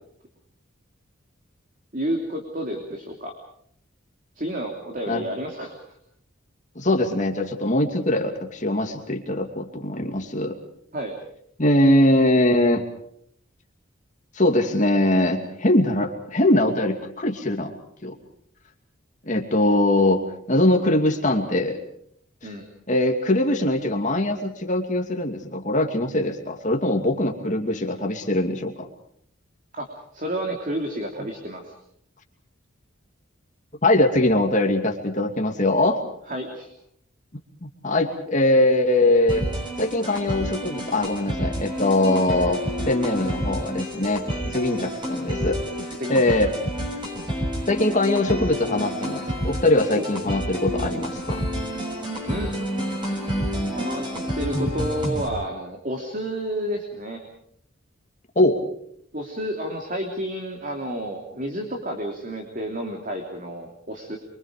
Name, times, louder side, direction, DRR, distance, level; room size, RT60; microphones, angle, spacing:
voice 1, 1.9-3.3 4.4-5.7 10.9-11.1 19.4-19.6 22.4-22.7 29.7-29.9 30.1-31.7 36.3-36.7 45.9-46.2 49.9-50.0 52.3-52.5 53.7-54.1 54.3-57.2 59.1-64.2, right 1 dB, 40° right, 2 dB, 3.1 m, -30 dB
voice 2, 6.8-10.6 11.6-12.8 14.4-17.7 18.0-18.1 19.3-20.2 20.5-21.8 22.4-22.5 22.9-28.9 33.8-36.0 37.8-39.4 39.8-45.6 46.1-46.5 47.7-51.4 58.4-58.6, left 1 dB, 40° left, 4 dB, 2.6 m, -22 dB
sound 1, 39.3-55.3, equal, 25° right, 6.7 m, -29 dB
28.5 x 24.0 x 5.2 m, 0.68 s
head